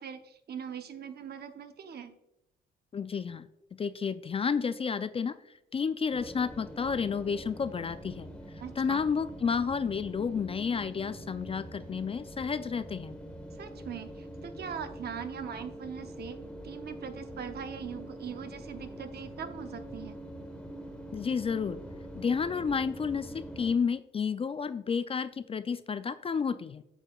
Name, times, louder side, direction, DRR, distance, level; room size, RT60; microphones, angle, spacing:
voice 1, 0.0-2.2 8.6-9.0 13.5-16.4 16.6-20.2, right 7 dB, 55° right, 8 dB, 0.8 m, -41 dB
voice 2, 2.9-3.5 3.8-5.4 5.7-8.3 8.8-13.2 21.1-21.8 22.1-26.8, left 6 dB, 30° left, 12 dB, 0.3 m, -31 dB
sound 1, 6.1-23.8, right 1 dB, 5° left, 1.1 m, -44 dB
8.9 x 6.5 x 2.3 m, 0.86 s
cardioid pair, 90°, 20 cm